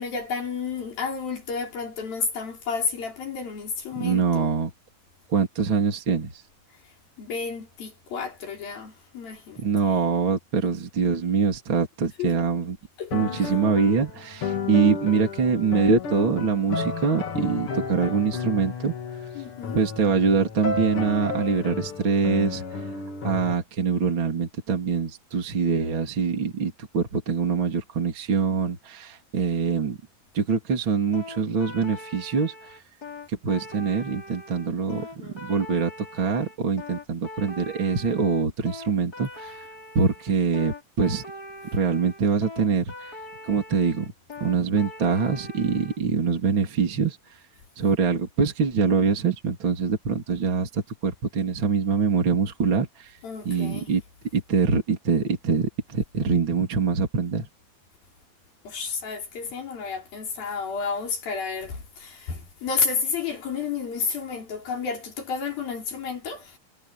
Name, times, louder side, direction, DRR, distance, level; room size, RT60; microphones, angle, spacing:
voice 1, 0.0-4.5 7.2-9.6 12.2-12.4 13.0-13.5 19.3-19.8 34.9-35.4 53.2-53.9 58.6-66.6, left 5 dB, 75° left, 6.5 m, -31 dB
voice 2, 4.0-4.7 5.3-6.3 9.6-12.8 13.1-18.9 19.7-22.6 23.2-30.0 30.3-32.8 33.3-35.1 35.4-39.6 40.0-41.2 41.7-43.1 43.4-44.1 44.4-47.2 47.8-53.1 53.5-54.0 54.3-57.5, right 5 dB, 35° right, 3.6 m, -24 dB
sound 1, 13.1-23.5, left 4 dB, 45° left, 2.4 m, -32 dB
sound 2, 31.1-46.0, left 1 dB, 25° left, 6.2 m, -41 dB
omnidirectional pair, 4.2 m